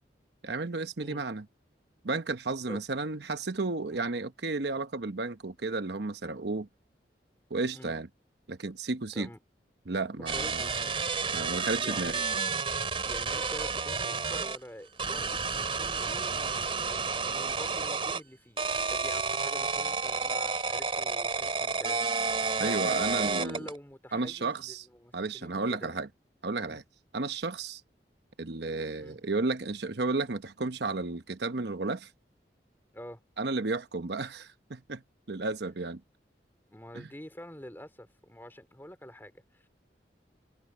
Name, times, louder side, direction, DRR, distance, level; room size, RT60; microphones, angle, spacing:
voice 1, 0.4-1.4 2.0-6.7 7.5-8.1 8.5-9.3 9.9-10.7 11.3-12.2 22.6-23.6 24.1-24.8 25.1-26.1 26.4-26.8 27.1-27.8 28.4-32.1 33.4-35.0 35.3-36.0 36.9-37.1, right 3 dB, 70° right, 1.0 m, -33 dB
voice 2, 10.1-11.0 11.8-12.2 13.0-25.9 26.7-26.8 29.0-29.2 32.9-33.2 36.7-39.7, equal, 10° left, 3.4 m, -47 dB
sound 1, 10.3-14.6 15.0-18.2 18.6-23.8, right 4 dB, 30° right, 3.1 m, -31 dB
head